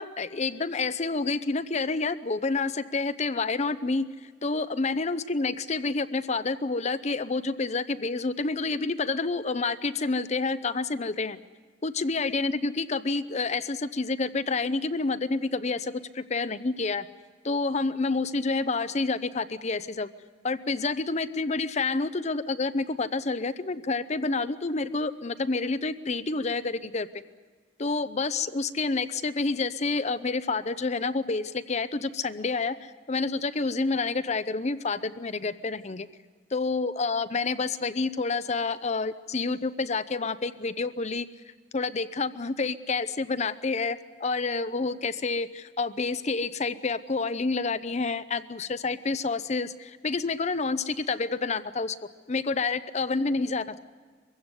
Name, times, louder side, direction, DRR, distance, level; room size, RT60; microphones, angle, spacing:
voice 1, 0.0-4.1 4.4-11.4 11.8-17.1 17.4-20.1 20.4-27.1 27.8-36.1 36.5-41.3 41.7-52.0 52.3-53.8, left 3 dB, 40° left, 13 dB, 0.7 m, -28 dB
23.0 x 16.0 x 9.7 m, 1.5 s
head